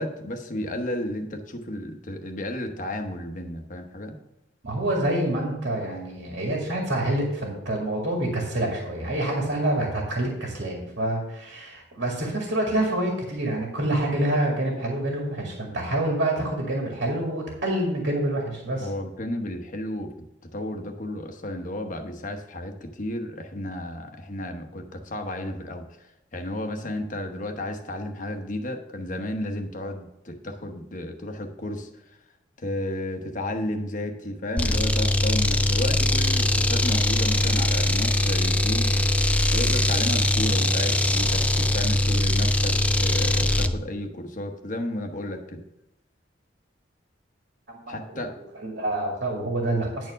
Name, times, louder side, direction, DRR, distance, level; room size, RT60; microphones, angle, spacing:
voice 1, 0.0-4.1 18.8-20.3 20.5-26.1 26.3-32.2 32.6-39.2 39.5-45.6 47.9-48.3, left 1 dB, 45° left, 5 dB, 1.0 m, -33 dB
voice 2, 4.6-18.9 47.7-48.2 48.6-50.1, right 1 dB, 70° right, -1 dB, 2.2 m, -27 dB
sound 1, 34.6-43.8, left 1 dB, 5° left, 0.3 m, -22 dB
10.0 x 4.5 x 6.3 m, 0.90 s
head